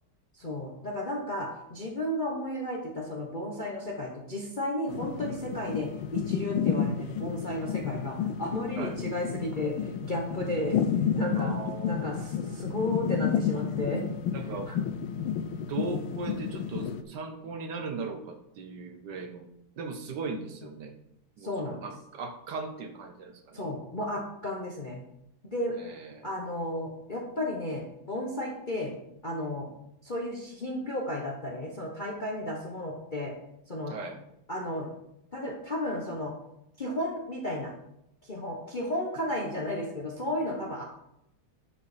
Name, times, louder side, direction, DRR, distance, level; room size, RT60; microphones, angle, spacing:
voice 1, 0.4-10.8 11.1-11.5 11.8-14.1 14.7-14.8 21.4-21.8 23.5-25.0 25.5-25.8 26.2-28.9 29.2-29.7 30.0-33.3 33.7-33.9 34.5-34.9 35.3-36.3 36.8-37.7 38.2-40.8, left 1 dB, 35° left, 0 dB, 0.8 m, -33 dB
sound 1, 4.9-17.0, left 7 dB, 90° left, 1.5 m, -31 dB
voice 2, 11.4-12.0 14.3-14.7 15.7-19.4 19.8-20.9 21.4-23.6 25.8-26.3 33.9-34.2, right 4 dB, 65° right, 6 dB, 1.4 m, -38 dB
10.5 x 4.8 x 5.0 m, 0.82 s
omnidirectional pair, 2.2 m